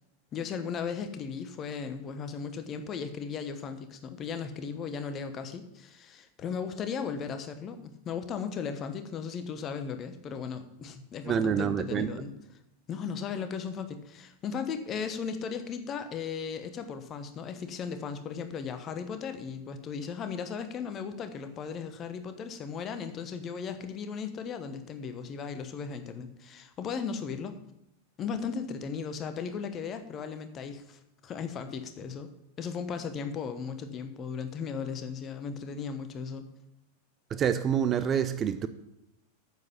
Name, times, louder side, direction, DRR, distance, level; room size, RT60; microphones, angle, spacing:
voice 1, 0.3-12.3 12.9-27.5 28.2-32.3 32.6-36.5, left 6 dB, 30° left, 1.1 m, -36 dB
voice 2, 11.3-12.1 37.3-38.7, right 8 dB, 25° right, 0.6 m, -27 dB
9.4 x 7.6 x 5.7 m
figure-of-eight pair, 90°, 0 cm